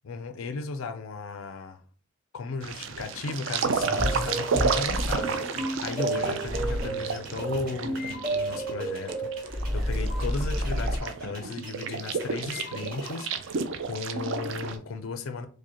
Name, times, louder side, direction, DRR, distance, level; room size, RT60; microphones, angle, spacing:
voice 1, 0.0-1.8 2.3-15.5, left 4 dB, 85° left, 0.4 m, -36 dB
sound 1, 2.6-14.8, right 5 dB, 70° right, 0.4 m, -32 dB
sound 2, 3.8-13.4, right 2 dB, 45° right, 1.4 m, -33 dB
sound 3, 4.8-5.5 6.4-7.1 9.5-11.0, left 1 dB, ahead, 0.4 m, -30 dB
4.8 x 2.1 x 2.8 m
head